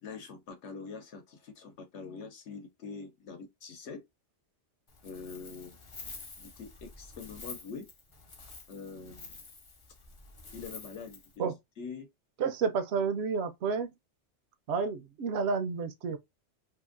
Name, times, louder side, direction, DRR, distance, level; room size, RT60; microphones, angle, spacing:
voice 1, 0.0-4.0 5.0-5.8 6.4-7.9 8.7-9.4 10.5-11.5 11.8-12.1, left 5 dB, 75° left, 1.0 m, -44 dB
Wind, 4.9-11.4, left 3 dB, 35° left, 0.5 m, -48 dB
voice 2, 12.4-13.9 14.7-16.2, right 5 dB, 70° right, 0.8 m, -30 dB
2.8 x 2.5 x 2.4 m
omnidirectional pair, 1.2 m